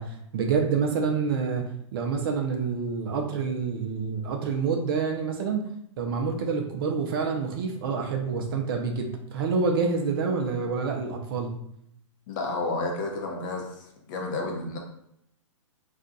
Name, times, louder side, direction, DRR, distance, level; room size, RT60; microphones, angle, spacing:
voice 1, 0.0-5.7 6.0-11.5, right 5 dB, 45° right, 2 dB, 0.5 m, -27 dB
voice 2, 12.3-13.7 14.1-14.8, left 2 dB, 40° left, 1 dB, 0.7 m, -30 dB
2.5 x 2.2 x 3.8 m, 0.74 s
hypercardioid pair, 145°, 16 cm